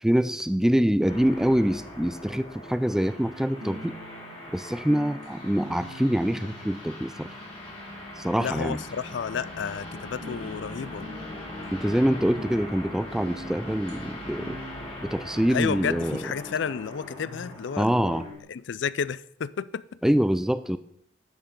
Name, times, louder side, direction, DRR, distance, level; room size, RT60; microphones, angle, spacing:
voice 1, 0.0-3.9 4.5-7.3 8.2-8.8 11.7-14.6 15.0-16.2 17.8-18.2 20.0-20.8, equal, 5° right, 0.3 m, -25 dB
sound 1, 1.1-18.3, left 1 dB, 35° left, 3.6 m, -41 dB
sound 2, 1.2-18.4, equal, 75° right, 2.9 m, -46 dB
voice 2, 8.4-11.0 15.5-17.9 18.5-19.8, left 6 dB, 70° left, 0.4 m, -31 dB
11.0 x 5.9 x 5.3 m
head